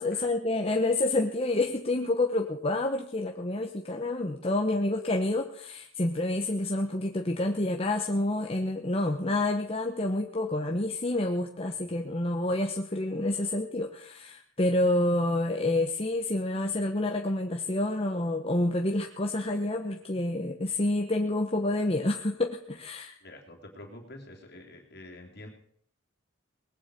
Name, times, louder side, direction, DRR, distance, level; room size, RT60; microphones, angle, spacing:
voice 1, 0.0-23.2, left 2 dB, 30° left, 3 dB, 1.0 m, -28 dB
voice 2, 23.2-25.5, left 1 dB, 50° left, 1 dB, 3.4 m, -47 dB
19.5 x 8.1 x 8.3 m, 0.62 s
head